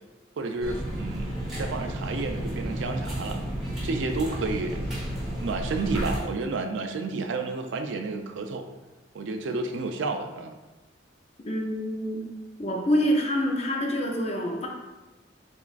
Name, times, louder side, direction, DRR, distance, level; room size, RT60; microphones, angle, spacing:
voice 1, 0.4-3.4 3.8-4.9 5.4-8.7 9.1-10.6, right 3 dB, 75° right, 5 dB, 0.4 m, -31 dB
sound 1, 0.6-6.2, equal, ahead, 1.2 m, -32 dB
voice 2, 11.4-12.2 12.6-14.7, equal, 35° left, 0 dB, 0.6 m, -26 dB
7.0 x 2.4 x 2.4 m, 1.2 s
head